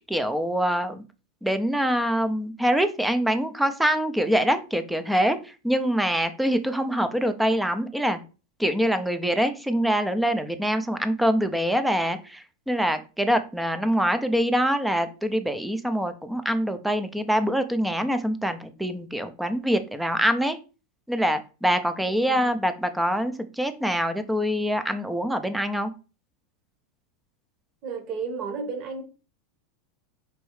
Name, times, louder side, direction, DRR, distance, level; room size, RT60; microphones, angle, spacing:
voice 1, 0.1-1.0 1.4-8.2 8.6-20.6 21.1-25.9, equal, 5° right, 0.5 m, -24 dB
voice 2, 22.1-22.4 27.8-29.0, right 5 dB, 40° right, 1.0 m, -33 dB
4.6 x 3.1 x 3.1 m
supercardioid pair, 140°, 0 cm